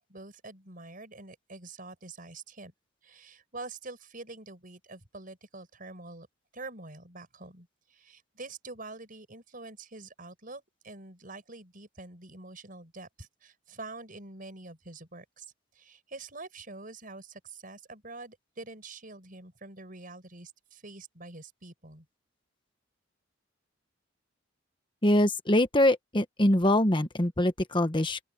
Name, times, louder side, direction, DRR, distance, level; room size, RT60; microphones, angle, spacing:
voice 1, 0.0-2.7 3.0-6.3 6.5-15.5 15.7-22.1, right 3 dB, 45° right, 6.0 m, -46 dB
voice 2, 25.0-28.2, left 1 dB, 25° left, 1.3 m, -24 dB
open air
head